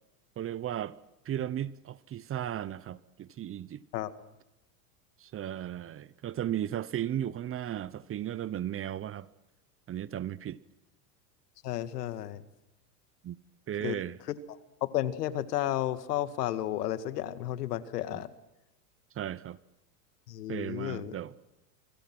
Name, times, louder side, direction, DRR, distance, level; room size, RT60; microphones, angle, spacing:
voice 1, 0.4-1.0 1.2-3.8 5.2-9.3 9.9-10.6 13.2-13.4 13.7-14.2 18.1-18.2 19.2-19.6 20.5-21.3, right 11 dB, 30° right, 1.0 m, -35 dB
voice 2, 11.6-12.4 13.8-14.0 14.3-18.3 20.3-21.2, left 13 dB, 80° left, 2.1 m, -33 dB
28.0 x 24.5 x 6.2 m
hypercardioid pair, 110°, 47 cm